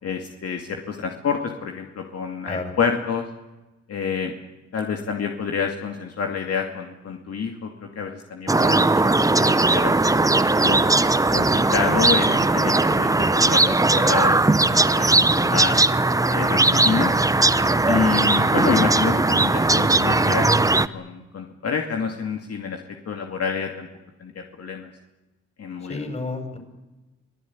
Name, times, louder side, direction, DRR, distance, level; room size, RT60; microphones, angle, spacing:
voice 1, 0.0-3.3 3.9-4.3 4.7-8.9 9.2-10.2 10.6-10.8 11.3-15.8 16.3-17.1 17.9-22.8 23.1-23.9 24.2-24.9 25.6-26.0, left 6 dB, 55° left, 3 dB, 2.5 m, -28 dB
sound 1, 8.5-20.9, right 2 dB, 10° right, 0.8 m, -19 dB
voice 2, 17.9-18.2 25.8-26.6, left 3 dB, 20° left, 7 dB, 6.0 m, -31 dB
25.0 x 17.0 x 9.7 m, 1.1 s
cardioid pair, 90°, 30 cm